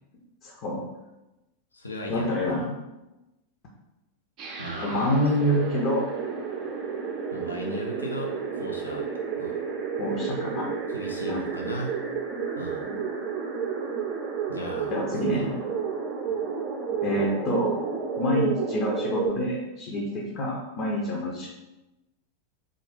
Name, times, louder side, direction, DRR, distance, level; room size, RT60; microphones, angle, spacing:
voice 1, 0.4-0.8 2.1-2.7 4.8-6.1 10.0-10.7 11.3-11.5 12.8-13.0 14.9-15.5 17.0-17.8 18.2-21.5, left 1 dB, 40° left, -2 dB, 0.7 m, -27 dB
voice 2, 1.7-2.7 4.6-5.2 7.3-9.1 9.4-9.6 10.9-12.0 12.5-12.8 14.5-15.5, equal, 80° left, 0 dB, 0.5 m, -37 dB
sound 1, 4.4-19.3, right 6 dB, 35° right, 0.6 m, -31 dB
3.7 x 2.5 x 3.4 m, 0.99 s
figure-of-eight pair, 90°, 0 cm